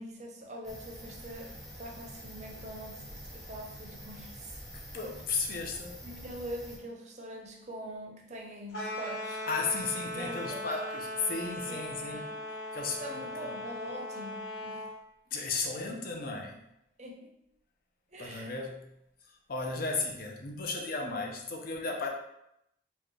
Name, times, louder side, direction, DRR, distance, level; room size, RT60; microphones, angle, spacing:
voice 1, 0.0-4.6 5.0-5.2 6.0-9.4 10.1-10.7 11.7-14.8 17.0-17.3 18.1-18.5, right 1 dB, 40° right, 0 dB, 0.6 m, -44 dB
sound 1, 0.6-6.8, equal, ahead, 0.8 m, -47 dB
voice 2, 4.9-6.0 9.3-12.3 12.7-13.5 15.3-16.6 18.2-18.9 19.2-22.1, left 4 dB, 50° left, 1 dB, 0.6 m, -35 dB
sound 2, 8.7-14.9, left 1 dB, 75° left, 1.3 m, -39 dB
4.4 x 2.3 x 3.1 m, 0.82 s
head